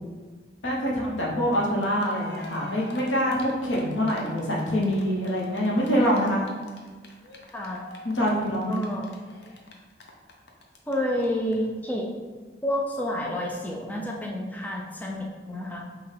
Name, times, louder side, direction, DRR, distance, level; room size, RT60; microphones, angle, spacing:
voice 1, 0.6-6.4 8.0-8.8, equal, 90° left, -3 dB, 1.0 m, -25 dB
Cheering, 1.5-1.6 1.8-10.9 11.2-11.3 11.5-11.6, left 1 dB, 65° left, 0.6 m, -45 dB
voice 2, 8.7-9.1 10.9-12.0 12.6-15.8, equal, 10° left, -1 dB, 0.3 m, -29 dB
5.5 x 2.3 x 3.3 m, 1.4 s
head